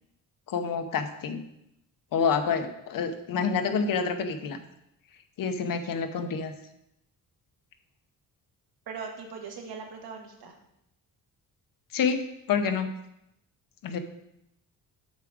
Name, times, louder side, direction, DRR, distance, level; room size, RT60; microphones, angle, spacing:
voice 1, 0.5-1.4 2.1-4.6 5.4-6.5 11.9-12.2 12.5-12.9 13.8-14.0, left 6 dB, 65° left, 8 dB, 0.9 m, -28 dB
voice 2, 8.9-10.5, right 5 dB, 85° right, 2 dB, 1.7 m, -40 dB
7.3 x 4.9 x 6.2 m, 0.80 s
wide cardioid pair, 170°, 36 cm